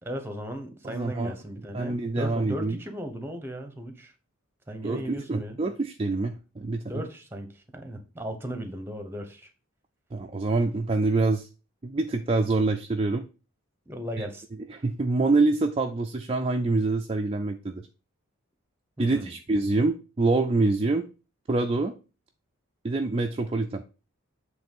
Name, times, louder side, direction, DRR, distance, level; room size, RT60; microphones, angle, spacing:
voice 1, 0.0-4.1 4.7-5.6 6.9-9.5 13.9-14.4 19.0-19.3, equal, 10° right, 1.0 m, -36 dB
voice 2, 0.8-1.3 1.7-2.8 4.8-7.1 10.1-11.5 11.8-13.2 14.2-14.3 14.7-17.9 19.0-21.1 21.5-21.9 22.8-23.8, right 3 dB, 25° right, 0.4 m, -26 dB
7.9 x 3.3 x 5.3 m
head